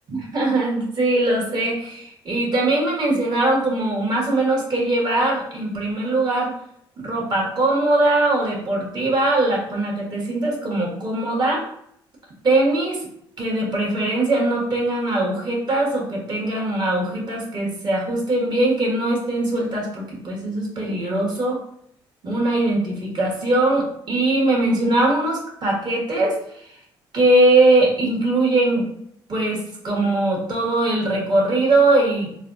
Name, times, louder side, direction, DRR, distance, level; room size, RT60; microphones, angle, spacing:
voice 1, 0.1-6.5 7.0-11.6 12.4-13.1 13.4-21.6 22.2-26.4 27.1-28.9 29.3-32.3, right 2 dB, 45° right, -2 dB, 1.3 m, -21 dB
3.3 x 2.2 x 2.6 m, 0.69 s
supercardioid pair, 70°, 11 cm